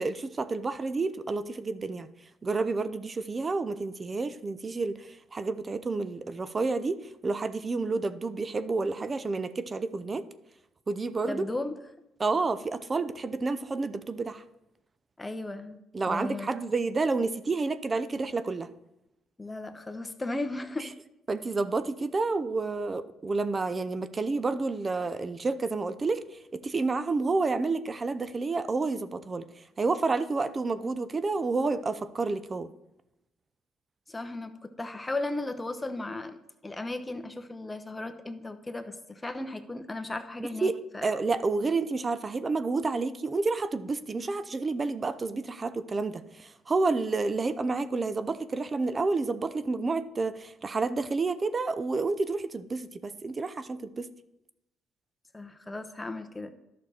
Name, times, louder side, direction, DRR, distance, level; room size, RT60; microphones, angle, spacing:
voice 1, 0.0-2.1 2.4-10.3 10.9-11.4 12.2-14.4 15.9-18.7 21.3-26.2 26.5-29.4 29.8-32.7 40.4-40.8 41.0-54.1, right 3 dB, 30° right, 12 dB, 0.7 m, -30 dB
voice 2, 11.2-11.7 15.2-15.8 16.1-16.5 19.4-20.9 34.1-36.4 36.6-41.1 55.3-56.5, left 2 dB, 15° left, 8 dB, 1.0 m, -35 dB
11.5 x 6.3 x 4.3 m, 0.88 s
supercardioid pair, 75°, 0 cm